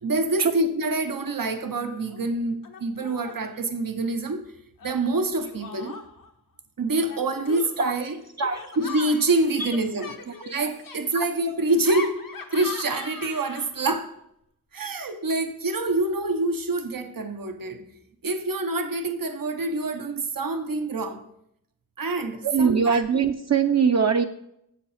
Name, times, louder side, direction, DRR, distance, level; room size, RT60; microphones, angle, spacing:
voice 1, 0.0-4.5 4.8-6.0 6.8-8.2 8.8-10.2 10.4-12.2 12.5-14.1 14.7-17.9 18.2-21.2 22.0-23.0, right 2 dB, 90° right, 0.9 m, -26 dB
Laughter, 0.9-1.3 1.6-2.2 2.6-3.5 4.8-6.3 7.0-13.9, left 4 dB, 80° left, 1.0 m, -41 dB
voice 2, 22.4-24.2, right 6 dB, 55° right, 0.5 m, -22 dB
7.2 x 7.2 x 5.7 m
wide cardioid pair, 45°, 33 cm